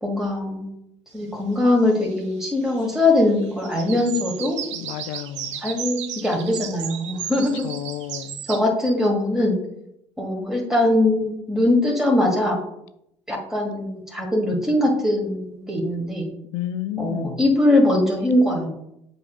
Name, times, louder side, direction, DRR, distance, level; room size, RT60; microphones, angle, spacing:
voice 1, 0.0-0.7 1.1-4.6 5.6-7.7 8.5-9.6 10.2-12.6 13.3-16.3 17.0-18.7, left 1 dB, 5° right, -1 dB, 1.5 m, -21 dB
sound 1, 2.0-2.9 3.2-8.6, right 9 dB, 75° right, 0.5 m, -34 dB
voice 2, 4.7-5.6 7.6-8.4 16.5-17.4, left 12 dB, 65° left, 13 dB, 0.4 m, -31 dB
9.1 x 4.8 x 2.2 m, 0.80 s
figure-of-eight pair, 50°, 15 cm